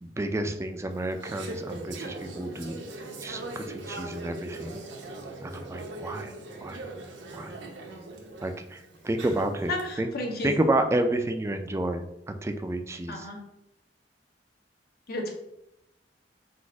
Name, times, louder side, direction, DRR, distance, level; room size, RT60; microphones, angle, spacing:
voice 1, 0.0-2.8 3.2-4.8 5.4-6.3 6.6-6.8 7.3-7.6 8.4-9.7 10.0-10.1 10.4-12.0 12.3-13.3, right 1 dB, 15° right, 7 dB, 0.3 m, -30 dB
Conversation / Chatter, 0.9-9.8, right 2 dB, 90° right, 0.8 m, -40 dB
voice 2, 9.4-10.5 13.1-13.4 15.1-15.3, left 2 dB, 60° left, 1 dB, 1.0 m, -33 dB
4.1 x 2.5 x 4.6 m, 0.84 s
head